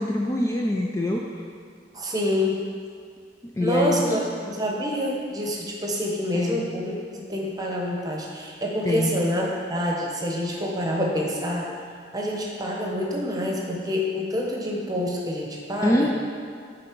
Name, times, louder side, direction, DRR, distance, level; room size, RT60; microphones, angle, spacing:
voice 1, 0.0-1.4 3.6-4.0 6.3-6.7 8.8-9.2 15.8-16.1, left 1 dB, 15° left, -1 dB, 0.4 m, -24 dB
voice 2, 1.9-2.6 3.6-6.9 7.3-11.7 12.1-16.1, left 1 dB, 20° right, -2 dB, 0.9 m, -27 dB
8.5 x 3.9 x 4.6 m, 2.2 s
head